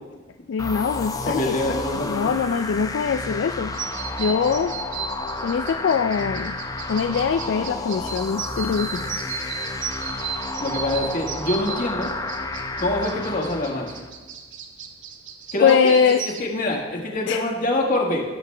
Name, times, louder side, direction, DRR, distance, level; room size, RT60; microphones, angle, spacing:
voice 1, 0.5-3.7 4.2-4.7 5.4-6.5 6.9-9.1 15.6-16.2 17.3-17.4, left 6 dB, 70° left, 8 dB, 0.3 m, -22 dB
sound 1, 0.6-14.1, left 2 dB, 20° left, 0.7 m, -31 dB
voice 2, 1.2-2.3 10.6-12.1 12.8-13.9 15.5-18.2, left 1 dB, 45° left, -1 dB, 1.6 m, -25 dB
sound 2, 3.7-16.4, right 7 dB, 75° right, 0.9 m, -35 dB
17.0 x 7.0 x 3.3 m, 1.3 s
head